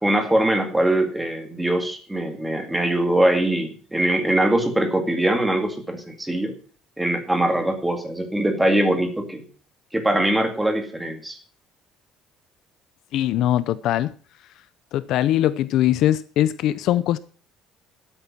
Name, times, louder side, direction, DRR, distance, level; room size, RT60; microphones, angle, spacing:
voice 1, 0.0-6.5 7.0-9.4 9.9-11.4, right 1 dB, 5° right, 5 dB, 2.2 m, -22 dB
voice 2, 13.1-14.1 14.9-17.2, left 12 dB, 60° left, 16 dB, 0.6 m, -21 dB
13.0 x 8.9 x 6.0 m, 0.40 s
cardioid pair, 155°, 0 cm